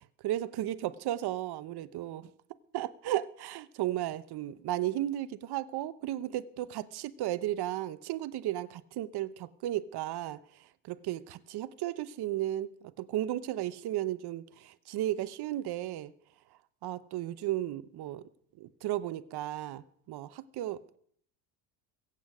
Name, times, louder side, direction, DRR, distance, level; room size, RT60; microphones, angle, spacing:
voice 1, 0.2-2.3 2.7-10.4 10.8-16.1 16.8-18.2 18.6-20.8, right 13 dB, 50° right, 0.9 m, -34 dB
22.5 x 8.3 x 4.9 m
supercardioid pair, 90°, 49 cm